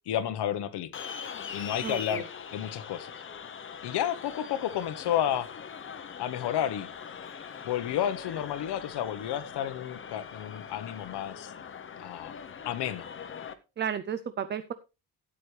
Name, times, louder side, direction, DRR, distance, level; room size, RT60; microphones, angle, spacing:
voice 1, 0.1-0.9 1.5-2.2 2.5-3.1 3.8-5.5 6.2-6.9 7.6-11.5 12.0-12.3 12.6-13.1, left 11 dB, 85° left, 1.0 m, -31 dB
sound 1, 0.9-13.5, left 7 dB, 30° left, 0.7 m, -42 dB
voice 2, 1.8-2.2 13.8-14.7, right 8 dB, 30° right, 0.4 m, -33 dB
12.5 x 8.6 x 3.2 m
cardioid pair, 165°, 39 cm